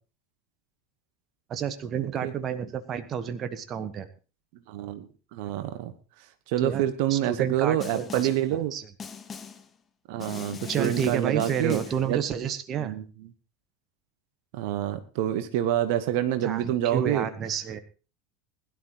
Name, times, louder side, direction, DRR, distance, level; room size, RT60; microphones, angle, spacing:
voice 1, 1.5-4.1 6.6-8.9 10.7-12.9 16.4-17.8, right 8 dB, 35° right, 11 dB, 1.2 m, -30 dB
voice 2, 4.7-5.9 6.5-8.7 10.1-11.8 12.1-12.2 12.8-13.0 14.5-17.3, right 12 dB, 55° right, 10 dB, 1.2 m, -27 dB
Snare drum, 7.8-8.5 9.0-9.7 10.2-12.1, left 6 dB, 25° left, 1.4 m, -40 dB
20.5 x 11.5 x 3.0 m, 0.35 s
figure-of-eight pair, 80°, 0 cm